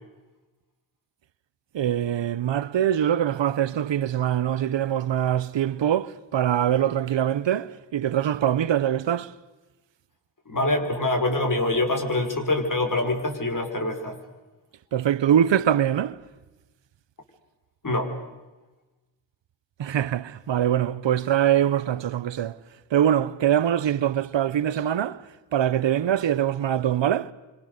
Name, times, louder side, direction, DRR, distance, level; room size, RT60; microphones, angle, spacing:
voice 1, 1.7-9.3 14.9-16.2 19.8-22.6 22.9-25.2 25.5-27.3, right 10 dB, 90° right, 0.9 m, -23 dB
voice 2, 10.5-14.2 17.8-18.1, left 2 dB, 45° left, 5.5 m, -25 dB
26.5 x 26.0 x 6.7 m
cardioid pair, 60°, 43 cm